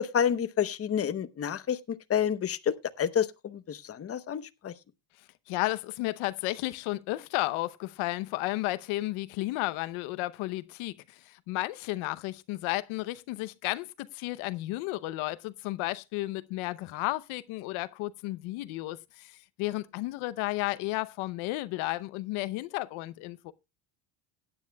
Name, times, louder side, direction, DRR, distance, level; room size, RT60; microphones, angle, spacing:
voice 1, 0.0-4.7, left 8 dB, 30° left, 0.8 m, -29 dB
voice 2, 5.5-23.5, left 19 dB, 85° left, 0.8 m, -33 dB
17.0 x 9.9 x 2.2 m
cardioid pair, 115°, 48 cm